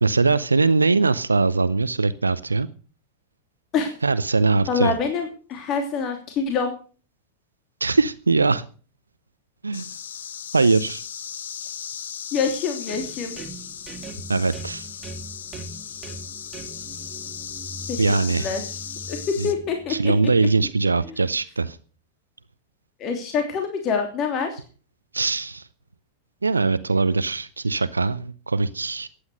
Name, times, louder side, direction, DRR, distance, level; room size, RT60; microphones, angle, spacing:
voice 1, 0.0-2.7 4.0-4.9 7.8-8.6 9.6-9.9 10.5-11.0 14.3-14.9 18.0-18.5 19.4-19.5 19.9-21.8 25.1-25.6 26.4-29.1, right 3 dB, 80° right, 0.7 m, -21 dB
voice 2, 4.7-6.7 12.3-13.3 17.9-18.8 19.1-20.0 23.0-24.6, left 5 dB, 35° left, 3.0 m, -26 dB
sound 1, 9.7-19.5, left 8 dB, 65° left, 1.2 m, -36 dB
sound 2, 12.9-20.6, right 3 dB, 20° right, 3.1 m, -41 dB
15.5 x 9.9 x 6.5 m
figure-of-eight pair, 90°, 0 cm